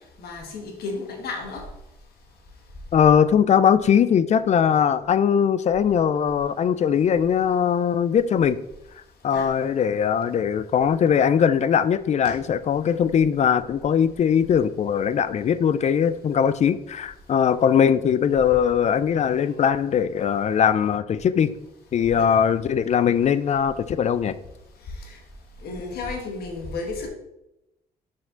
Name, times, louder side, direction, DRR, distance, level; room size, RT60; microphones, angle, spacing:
voice 1, 0.2-1.6 9.3-9.5 12.2-12.3 22.1-22.3 25.0-25.2 25.6-27.1, left 3 dB, 75° left, 2 dB, 1.6 m, -33 dB
voice 2, 2.9-8.6 9.2-21.5 21.9-24.3, left 8 dB, 45° left, 15 dB, 0.4 m, -20 dB
6.0 x 4.7 x 3.8 m, 0.88 s
supercardioid pair, 75°, 16 cm